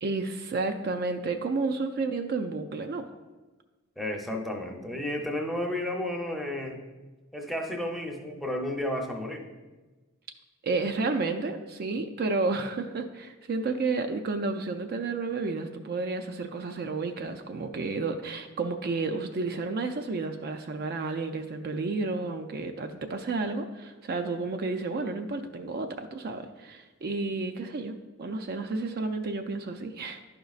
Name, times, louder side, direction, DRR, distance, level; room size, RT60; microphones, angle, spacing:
voice 1, 0.0-3.1 10.6-30.2, right 3 dB, 50° right, 6 dB, 0.4 m, -31 dB
voice 2, 4.0-6.8 7.3-9.5, left 1 dB, ahead, 1 dB, 0.7 m, -32 dB
11.0 x 5.1 x 2.4 m, 1.2 s
head